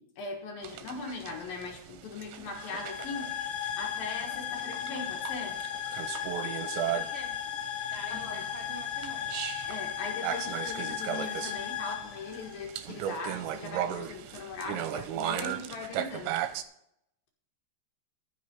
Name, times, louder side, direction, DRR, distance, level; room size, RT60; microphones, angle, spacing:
voice 1, 0.0-5.6 7.7-8.5 9.7-16.3, left 3 dB, 60° left, 1 dB, 2.9 m, -40 dB
sound 1, 0.6-16.6, right 10 dB, 85° right, 3.0 m, -37 dB
sound 2, 2.6-13.1, left 10 dB, 80° left, 3.3 m, -36 dB
voice 2, 6.9-7.3 7.8-9.4, right 2 dB, 65° right, -2 dB, 1.4 m, -46 dB
14.0 x 6.3 x 5.3 m, 0.76 s
omnidirectional pair, 5.4 m